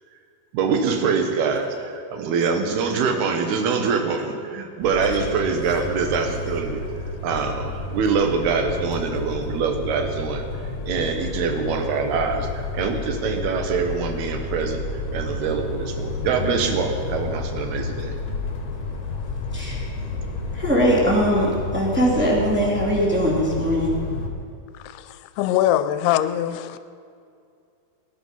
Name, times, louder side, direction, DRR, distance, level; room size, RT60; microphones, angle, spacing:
voice 1, 0.5-1.7 2.1-6.9 7.2-10.4 10.9-14.8 15.1-18.1, right 5 dB, 80° right, 5 dB, 3.2 m, -24 dB
sound 1, 4.8-24.3, left 3 dB, 55° left, 2.7 m, -31 dB
voice 2, 20.5-24.0, equal, 5° right, -6 dB, 2.8 m, -21 dB
voice 3, 24.8-26.8, left 12 dB, 85° left, 13 dB, 2.6 m, -22 dB
19.0 x 11.0 x 5.6 m, 2.4 s
omnidirectional pair, 4.5 m